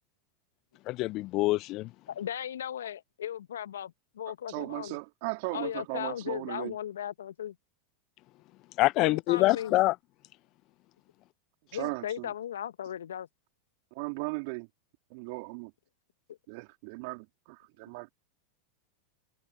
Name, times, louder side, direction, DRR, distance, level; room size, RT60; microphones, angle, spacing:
voice 1, 0.9-1.9 8.8-10.0, left 19 dB, 45° left, 0.5 m, -25 dB
voice 2, 2.1-5.0 5.5-7.5 9.0-9.7 11.7-13.3 16.3-16.4, left 10 dB, 75° left, 1.3 m, -37 dB
voice 3, 4.5-6.7 11.7-12.3 13.9-14.7 15.1-15.7 16.5-18.1, right 29 dB, 55° right, 3.2 m, -37 dB
hypercardioid pair, 90°, 0 cm